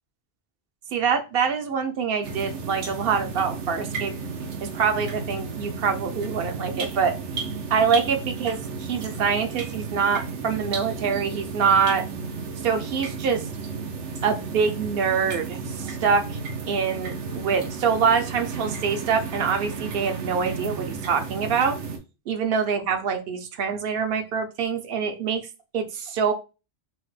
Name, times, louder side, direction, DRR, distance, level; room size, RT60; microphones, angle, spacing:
voice 1, 0.9-4.1 4.6-7.1 7.7-12.0 12.6-13.4 14.2-16.2 16.7-21.8 22.3-25.5 25.7-26.3, right 6 dB, 60° right, 6 dB, 0.7 m, -25 dB
sound 1, 2.2-22.0, right 5 dB, 80° right, 1.0 m, -33 dB
4.2 x 2.1 x 3.2 m, 0.30 s
omnidirectional pair, 1.2 m